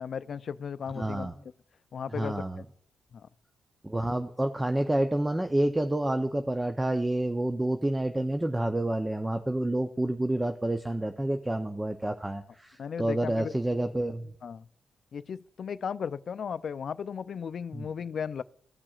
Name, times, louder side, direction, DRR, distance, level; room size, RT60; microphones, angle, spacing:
voice 1, 0.0-1.3 1.9-2.4 3.1-3.3 12.8-13.5 14.4-14.7 15.1-18.4, left 7 dB, 60° left, 0.4 m, -35 dB
voice 2, 1.0-1.3 2.1-2.6 3.8-14.3 17.7-17.9, right 1 dB, 15° right, 0.6 m, -29 dB
16.5 x 5.9 x 2.4 m
cardioid pair, 70°, 0 cm